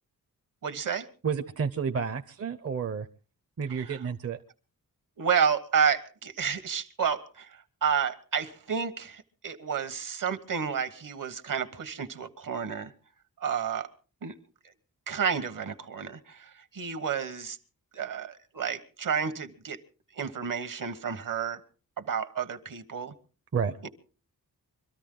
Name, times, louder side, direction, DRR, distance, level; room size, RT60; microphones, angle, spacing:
voice 1, 0.6-1.1 3.8-3.9 5.2-12.9 13.4-13.9 14.2-14.3 15.1-17.6 17.9-19.8 20.1-21.6 22.0-23.1 23.8-23.9, right 7 dB, 65° right, 1.3 m, -30 dB
voice 2, 1.2-3.1 3.6-4.4 23.5-23.8, right 6 dB, 40° right, 0.7 m, -30 dB
24.5 x 13.5 x 3.8 m
wide cardioid pair, 150°, 35 cm